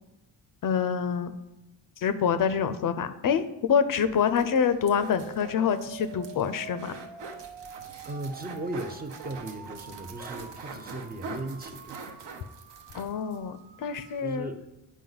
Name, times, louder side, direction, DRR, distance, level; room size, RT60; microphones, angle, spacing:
voice 1, 0.6-1.3 2.0-6.9 12.9-14.5, left 7 dB, 50° left, 10 dB, 0.4 m, -26 dB
sound 1, 4.1-13.4 13.7-13.8 14.1-14.2, right 3 dB, 65° right, 1.0 m, -44 dB
sound 2, 4.4-14.4, right 10 dB, 80° right, 0.6 m, -46 dB
voice 2, 8.0-12.0 14.2-14.6, right 1 dB, 20° right, 6 dB, 0.5 m, -37 dB
9.2 x 5.0 x 3.9 m, 0.94 s
cardioid pair, 145°, 45 cm